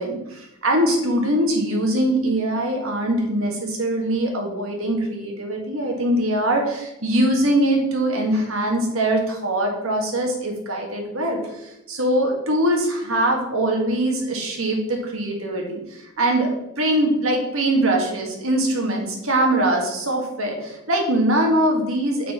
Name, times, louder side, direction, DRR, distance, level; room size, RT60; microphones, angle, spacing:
voice 1, 0.0-16.5 16.8-22.3, right 1 dB, 75° right, 1 dB, 1.8 m, -22 dB
6.2 x 5.6 x 5.7 m, 0.88 s
head